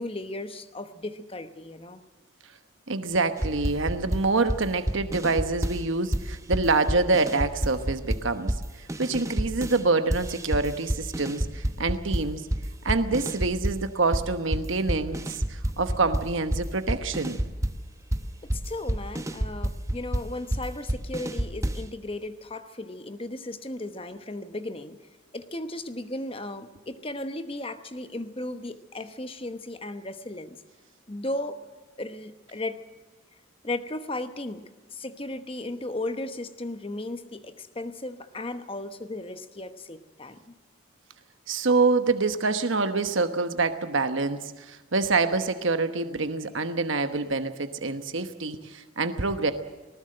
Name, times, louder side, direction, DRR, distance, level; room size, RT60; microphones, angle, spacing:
voice 1, 0.0-2.0 18.4-25.0 25.3-30.6 31.1-31.6 32.0-32.8 33.6-40.5, left 2 dB, 25° left, 9 dB, 1.0 m, -35 dB
voice 2, 2.9-8.5 9.0-12.4 12.8-17.4 41.5-49.5, right 3 dB, 65° right, 9 dB, 1.1 m, -26 dB
sound 1, 3.4-5.9 6.1-9.8 10.1-13.9 14.1-21.9, right 1 dB, 15° right, 0.8 m, -29 dB
19.5 x 19.0 x 7.7 m, 1.3 s
head